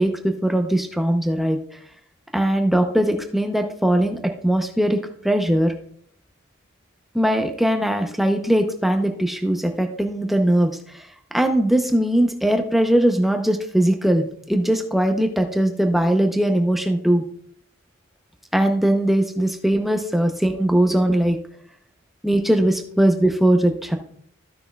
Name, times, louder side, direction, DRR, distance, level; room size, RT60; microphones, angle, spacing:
voice 1, 0.0-1.6 2.3-5.7 7.1-11.1 11.3-17.2 18.5-21.4 22.2-24.0, right 1 dB, ahead, 5 dB, 0.6 m, -20 dB
15.0 x 6.0 x 2.3 m, 0.64 s
head